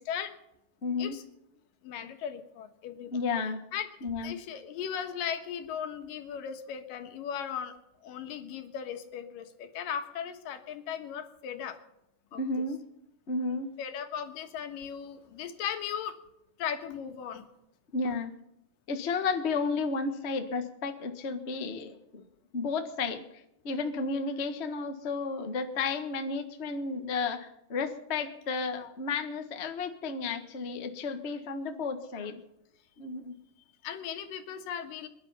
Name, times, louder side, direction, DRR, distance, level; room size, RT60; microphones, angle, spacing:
voice 1, 0.8-1.2 3.1-3.6 4.0-4.4 12.3-12.8 13.3-13.7 17.9-18.3 18.9-22.2 22.5-32.4 33.0-33.3, left 4 dB, 50° left, 6 dB, 0.7 m, -32 dB
voice 2, 1.8-3.2 3.7-7.7 8.0-11.8 12.3-12.4 13.8-16.2 16.6-17.4 19.7-19.8 28.7-28.9 32.0-32.3 33.8-35.1, left 8 dB, 85° left, 7 dB, 3.1 m, -37 dB
23.0 x 11.0 x 5.7 m, 0.84 s
omnidirectional pair, 3.8 m